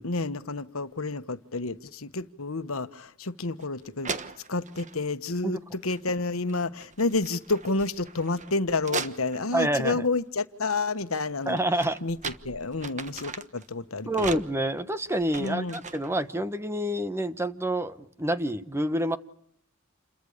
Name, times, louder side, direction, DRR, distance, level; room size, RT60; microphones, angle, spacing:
voice 1, 0.0-4.1 4.5-11.6 12.0-14.4 15.4-15.8, left 3 dB, 90° left, 1.4 m, -30 dB
sound 1, 3.6-3.7 4.0-5.0 5.7-6.2 6.5-9.7 11.2-13.7 14.1-16.2, right 5 dB, 35° right, 1.3 m, -39 dB
voice 2, 9.5-10.1 11.5-12.0 14.1-19.2, right 1 dB, 10° right, 1.1 m, -28 dB
29.0 x 22.5 x 6.7 m
head